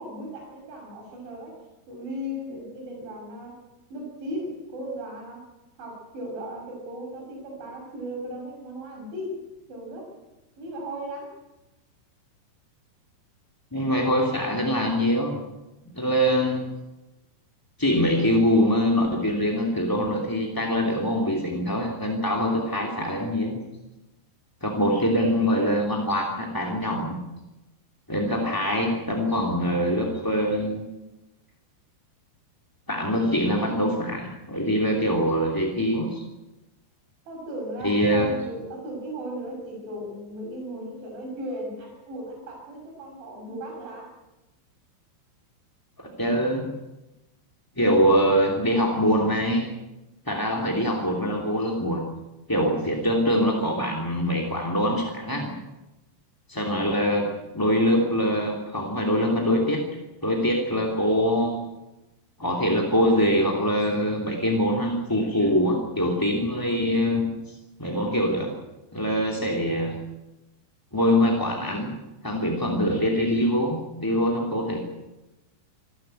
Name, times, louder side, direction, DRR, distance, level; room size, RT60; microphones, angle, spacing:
voice 1, 0.0-1.5 1.9-3.5 3.9-5.4 5.8-9.4 9.7-10.1 10.6-11.3 37.3-44.1, right 1 dB, 80° right, 0 dB, 8.9 m, -36 dB
voice 2, 13.7-15.4 15.9-16.7 17.8-23.6 24.6-27.2 28.1-30.8 32.9-36.2 37.8-38.3 46.0-46.7 47.7-49.7 50.3-52.1 52.5-55.5 56.5-59.8 60.2-61.6 62.4-67.5 67.8-68.5 68.9-70.0 70.9-71.9 72.2-74.8, equal, 5° left, -1 dB, 1.7 m, -24 dB
27.0 x 15.0 x 9.1 m, 1.0 s
omnidirectional pair, 5.3 m